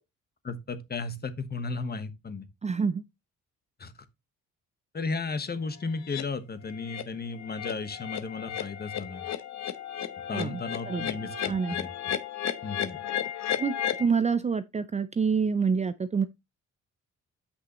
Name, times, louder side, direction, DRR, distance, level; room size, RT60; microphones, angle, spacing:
voice 1, 0.4-2.5 3.8-3.9 4.9-9.3 10.3-11.9 12.6-13.0, left 4 dB, 30° left, 1.3 m, -34 dB
voice 2, 2.6-3.0 10.3-10.6 10.9-11.0 11.5-11.8 13.6-16.3, right 5 dB, 25° right, 0.4 m, -27 dB
sound 1, 6.1-6.2 6.7-7.0 7.3-14.0, left 9 dB, 65° left, 0.9 m, -34 dB
8.3 x 6.0 x 3.0 m
cardioid pair, 90°, 30 cm